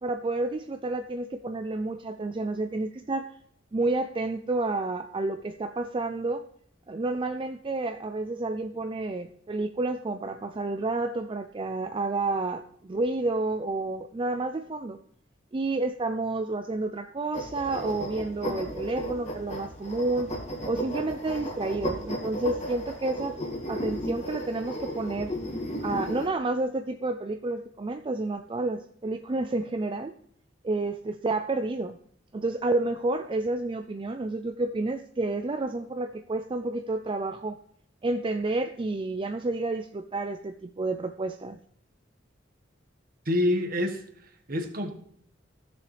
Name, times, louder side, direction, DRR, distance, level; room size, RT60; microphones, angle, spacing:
voice 1, 0.0-3.4 3.7-6.4 6.9-15.0 15.5-20.3 20.6-25.3 25.8-30.1 30.6-32.0 32.3-37.6 38.0-41.6, right 2 dB, 25° right, 8 dB, 0.4 m, -30 dB
sound 1, 17.3-26.3, equal, 35° left, 2.3 m, -34 dB
voice 2, 43.2-45.0, left 1 dB, 50° right, 5 dB, 1.4 m, -28 dB
15.0 x 6.9 x 3.3 m, 0.66 s
head